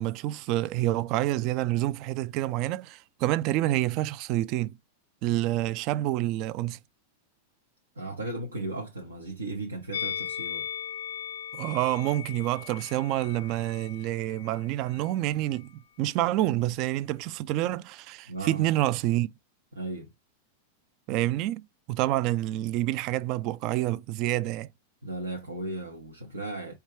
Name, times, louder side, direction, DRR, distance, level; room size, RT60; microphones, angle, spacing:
voice 1, 0.0-4.8 5.2-6.8 11.5-19.3 21.1-21.6 21.9-24.7, right 15 dB, 45° right, 0.3 m, -28 dB
voice 2, 7.9-10.7 18.3-18.6 19.7-20.1 25.0-26.8, right 2 dB, 85° right, 0.8 m, -36 dB
Musical instrument, 9.9-15.2 15.4-15.6, left 9 dB, 75° left, 0.4 m, -38 dB
4.4 x 2.3 x 3.3 m
hypercardioid pair, 95°, 0 cm